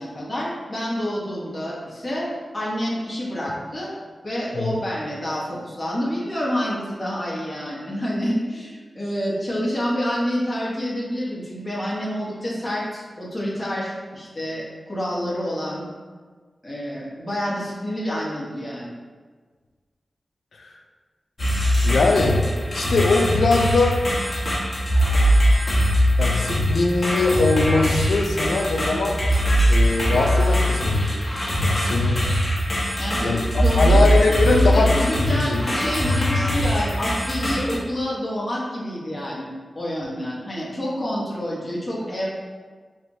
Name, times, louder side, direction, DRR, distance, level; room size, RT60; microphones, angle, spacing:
voice 1, 0.0-3.9 4.2-15.8 16.6-18.9 33.0-34.0 34.3-42.3, equal, 20° left, -8 dB, 1.1 m, -28 dB
sound 1, 21.4-37.8, equal, 40° left, 1.1 m, -21 dB
voice 2, 21.8-22.4 22.7-24.0 24.9-25.5 26.2-29.2 29.7-31.2 31.6-32.2 33.2-35.6, left 3 dB, 85° left, 1 dB, 0.4 m, -22 dB
3.3 x 2.9 x 2.6 m, 1.5 s
cardioid pair, 55°, 0 cm